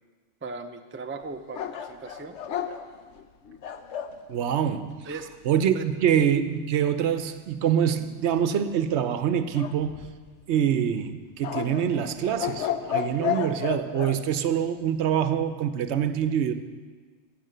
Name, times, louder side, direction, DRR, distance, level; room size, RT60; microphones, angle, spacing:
voice 1, 0.4-2.4 5.0-5.3 5.7-5.8, right 3 dB, 15° right, 0.4 m, -37 dB
sound 1, 1.5-4.2 9.5-10.4 11.4-14.2, left 9 dB, 85° left, 1.0 m, -32 dB
voice 2, 4.3-5.0 5.5-10.0 10.5-16.5, right 9 dB, 80° right, 0.9 m, -25 dB
12.0 x 7.2 x 7.7 m
omnidirectional pair, 1.2 m